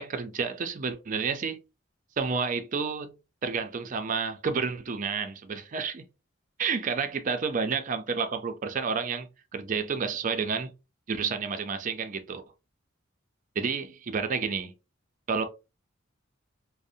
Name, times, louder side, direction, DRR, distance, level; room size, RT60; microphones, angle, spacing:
voice 1, 0.0-1.6 2.2-3.1 3.4-6.0 6.6-10.7 11.1-12.4 13.6-14.7 15.3-15.4, right 5 dB, 40° right, 0.4 m, -30 dB
2.5 x 2.0 x 2.6 m
head